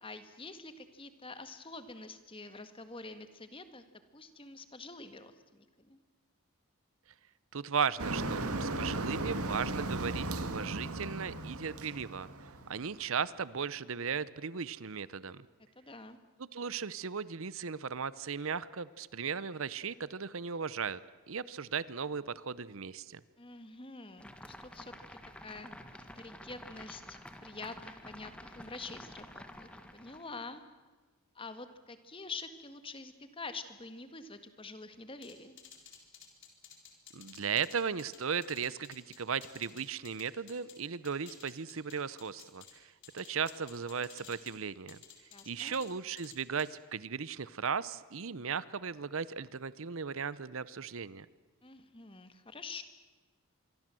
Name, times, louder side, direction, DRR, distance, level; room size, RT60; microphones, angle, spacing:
voice 1, 0.0-3.8 4.1-6.0 15.7-16.2 23.4-24.9 25.4-30.6 31.3-35.6 45.3-45.8 51.6-52.8, left 3 dB, 25° left, 10 dB, 1.7 m, -47 dB
voice 2, 7.5-12.3 12.7-15.5 16.4-21.0 21.3-23.2 37.1-45.0 45.5-51.3, right 6 dB, 65° right, 18 dB, 0.7 m, -36 dB
Motor vehicle (road), 8.0-12.9, right 2 dB, 85° right, 2.0 m, -36 dB
sound 1, 24.2-30.4, left 1 dB, 5° left, 1.7 m, -50 dB
sound 2, 35.2-40.8 41.0-42.7 43.0-44.5 44.9-45.9 46.2-46.7, left 8 dB, 55° left, 4.2 m, -54 dB
26.0 x 23.5 x 7.7 m, 1.3 s
head